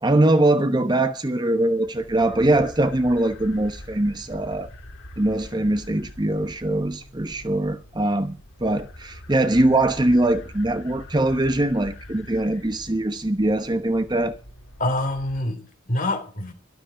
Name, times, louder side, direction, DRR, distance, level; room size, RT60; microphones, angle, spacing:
voice 1, 0.0-4.7 5.2-14.3, right 1 dB, 20° right, 1.0 m, -22 dB
sound 1, 1.7-15.4, left 1 dB, 65° left, 2.9 m, -43 dB
voice 2, 14.8-16.5, left 1 dB, 40° left, 3.2 m, -26 dB
13.0 x 12.5 x 5.1 m
head